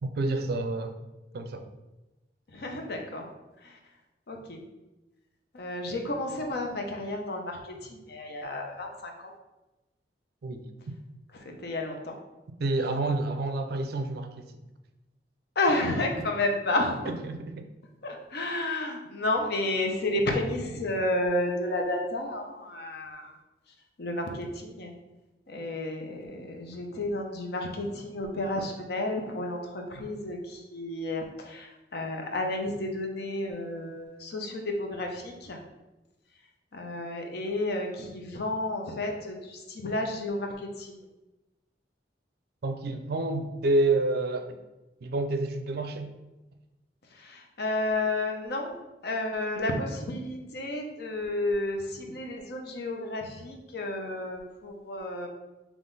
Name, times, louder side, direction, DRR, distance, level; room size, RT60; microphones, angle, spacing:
voice 1, 0.0-1.0 1.3-1.7 10.4-10.6 12.6-14.5 17.1-17.6 42.6-44.5 45.0-46.1, right 2 dB, 60° right, 7 dB, 0.4 m, -29 dB
voice 2, 2.5-3.3 3.6-3.8 4.3-4.6 5.5-9.3 11.4-12.1 15.6-17.2 18.0-23.3 24.0-24.9 25.5-35.6 36.7-41.0 47.2-48.8 49.0-55.3, left 2 dB, 65° left, 3 dB, 0.7 m, -31 dB
3.8 x 3.0 x 3.9 m, 1.1 s
head